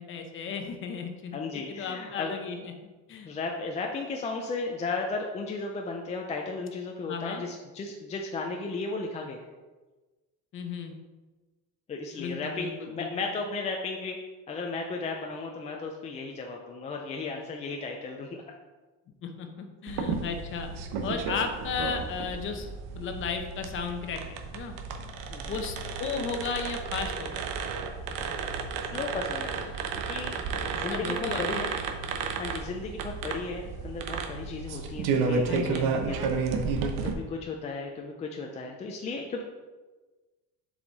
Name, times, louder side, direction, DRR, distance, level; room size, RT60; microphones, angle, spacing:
voice 1, 0.0-2.7 3.1-3.3 7.1-7.4 10.5-10.9 12.2-13.3 19.2-20.7 21.0-24.7 25.5-27.5 30.9-31.6 35.5-36.0, left 5 dB, 40° left, 5 dB, 0.8 m, -35 dB
voice 2, 1.3-2.3 3.2-9.5 11.9-14.2 14.5-18.4 25.3-25.7 28.9-30.4 30.7-31.7 32.3-36.4 37.0-39.4, left 3 dB, 20° left, 1 dB, 0.4 m, -35 dB
sound 1, 19.9-37.1, right 5 dB, 75° right, 0.9 m, -32 dB
7.0 x 4.8 x 4.0 m, 1.2 s
cardioid pair, 175°, 33 cm